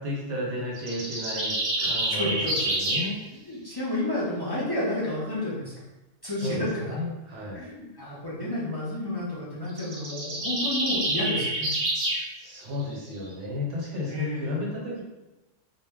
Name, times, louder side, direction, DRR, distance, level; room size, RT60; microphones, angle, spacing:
voice 1, 0.0-3.2 6.4-7.6 12.4-15.0, left 1 dB, 70° right, -4 dB, 1.1 m, -33 dB
sound 1, 0.8-3.1 9.7-12.2, right 1 dB, 50° right, 0.7 m, -27 dB
voice 2, 2.2-2.5 3.5-5.7 6.2-7.0 7.5-11.7 14.1-14.5, left 1 dB, 35° left, -9 dB, 0.3 m, -30 dB
2.2 x 2.1 x 3.5 m, 1.1 s
omnidirectional pair, 1.3 m